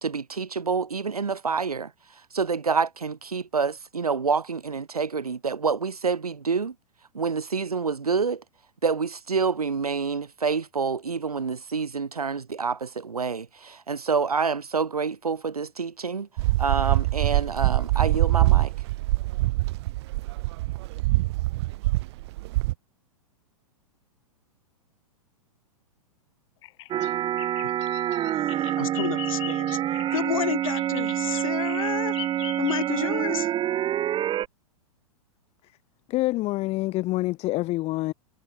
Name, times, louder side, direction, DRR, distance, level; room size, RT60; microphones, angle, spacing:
voice 1, 0.0-6.7 7.1-8.4 8.8-16.3 16.6-18.7, right 5 dB, 90° right, 0.8 m, -27 dB
sound 1, 16.4-22.7, right 20 dB, 45° right, 0.7 m, -24 dB
Bird vocalization bird call bird song, 26.6-33.2, left 18 dB, 50° left, 2.3 m, -41 dB
sound 2, 26.9-34.5, right 11 dB, 25° right, 1.8 m, -27 dB
voice 2, 28.4-32.1 32.6-33.5, left 10 dB, 65° left, 2.8 m, -31 dB
voice 3, 36.1-38.1, left 19 dB, 35° left, 1.6 m, -26 dB
figure-of-eight pair, 105°, 19 cm